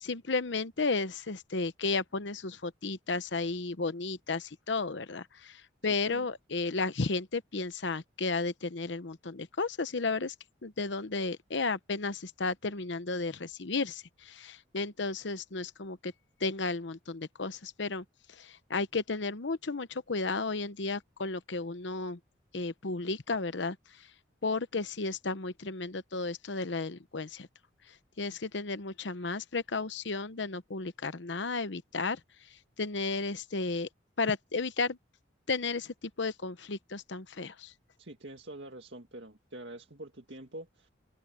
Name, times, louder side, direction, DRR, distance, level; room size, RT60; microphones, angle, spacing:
voice 1, 0.0-5.6 5.8-10.3 10.6-16.1 16.4-18.0 18.4-22.2 22.5-23.8 24.4-27.5 28.2-32.2 32.8-33.9 34.2-35.0 35.5-37.7, left 3 dB, 75° left, 0.9 m, -33 dB
voice 2, 38.0-40.9, right 1 dB, 70° right, 2.0 m, -45 dB
head